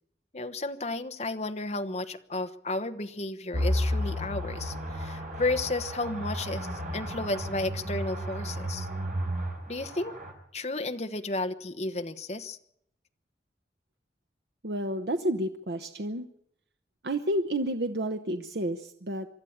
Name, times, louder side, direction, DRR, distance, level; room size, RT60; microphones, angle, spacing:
voice 1, 0.3-8.9 9.7-10.1 10.5-12.6, left 2 dB, 40° left, 8 dB, 1.2 m, -33 dB
sound 1, 3.5-10.3, equal, 45° right, 4.3 m, -33 dB
voice 2, 14.6-16.3 17.0-19.3, right 1 dB, 70° right, 7 dB, 1.0 m, -30 dB
24.5 x 12.5 x 8.7 m, 0.71 s
head